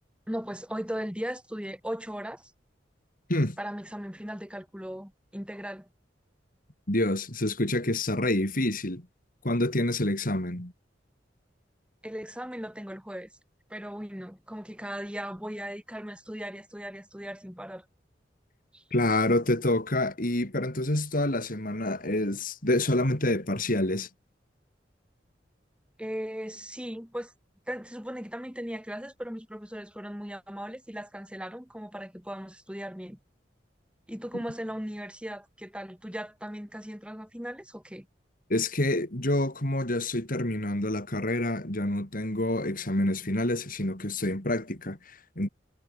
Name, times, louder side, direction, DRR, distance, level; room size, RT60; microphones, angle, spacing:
voice 1, 0.3-2.5 3.6-5.9 12.0-13.3 13.7-17.8 18.7-18.8 26.0-27.3 27.7-33.2 34.1-38.1, equal, 5° right, 7.0 m, -38 dB
voice 2, 6.9-9.0 9.4-10.7 18.9-24.1 38.5-45.5, left 1 dB, 50° left, 4.0 m, -27 dB
head